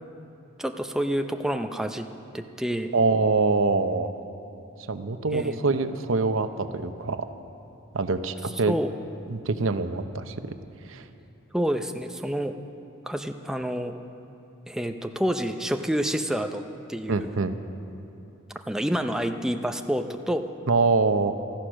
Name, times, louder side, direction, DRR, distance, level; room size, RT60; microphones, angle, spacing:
voice 1, 0.6-2.1 2.3-2.9 5.3-5.6 8.7-8.9 11.5-12.5 13.1-13.9 14.7-16.6 16.9-17.3 18.7-20.4, equal, 5° right, 6 dB, 0.6 m, -28 dB
voice 2, 2.9-4.1 4.9-7.3 7.9-8.8 9.3-10.3 10.8-11.1 17.1-17.6 20.7-21.3, right 3 dB, 80° right, 9 dB, 0.8 m, -24 dB
15.0 x 14.0 x 6.3 m, 2.9 s
head